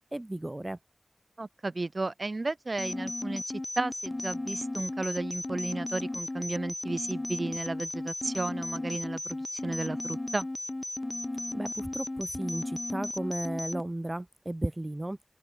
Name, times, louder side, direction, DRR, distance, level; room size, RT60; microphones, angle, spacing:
voice 1, 0.1-0.8 11.5-15.2, right 1 dB, 30° right, 1.0 m, -34 dB
voice 2, 1.4-10.5, right 2 dB, 65° right, 1.8 m, -34 dB
sound 1, 2.8-13.8, left 2 dB, 40° left, 2.9 m, -35 dB
open air
wide cardioid pair, 55°, 0 cm